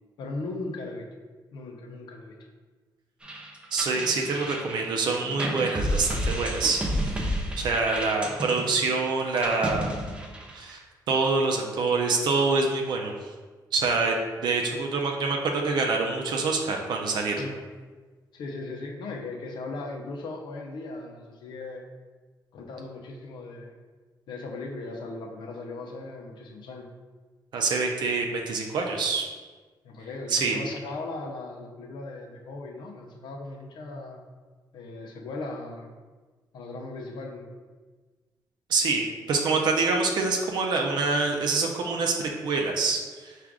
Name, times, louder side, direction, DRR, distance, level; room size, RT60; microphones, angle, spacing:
voice 1, 0.2-1.1 1.5-2.4 17.4-17.6 18.3-21.9 22.5-23.8 24.3-26.9 29.8-34.2 34.7-35.9 36.5-37.5, left 2 dB, 80° left, 2 dB, 0.6 m, -38 dB
sound 1, 3.2-10.7, equal, 15° right, 0.5 m, -31 dB
voice 2, 3.7-9.9 10.5-10.8 11.1-13.1 13.7-17.4 27.5-29.3 30.3-30.6 38.7-43.3, right 3 dB, 70° right, 1 dB, 0.5 m, -26 dB
4.6 x 2.5 x 3.6 m, 1.4 s
cardioid pair, 130°, 8 cm